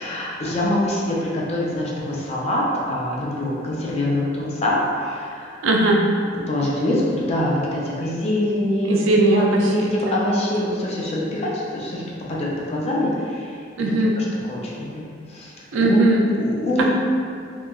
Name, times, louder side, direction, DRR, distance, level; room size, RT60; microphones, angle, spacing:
voice 1, 0.0-5.6 6.3-9.0 9.3-12.0 12.3-13.6 14.2-16.0 16.3-16.9, left 1 dB, 35° left, -4 dB, 0.4 m, -24 dB
voice 2, 5.6-6.0 8.9-10.1 13.8-14.2 15.7-16.3, right 2 dB, 90° right, -1 dB, 0.4 m, -19 dB
2.8 x 2.2 x 2.3 m, 2.2 s
head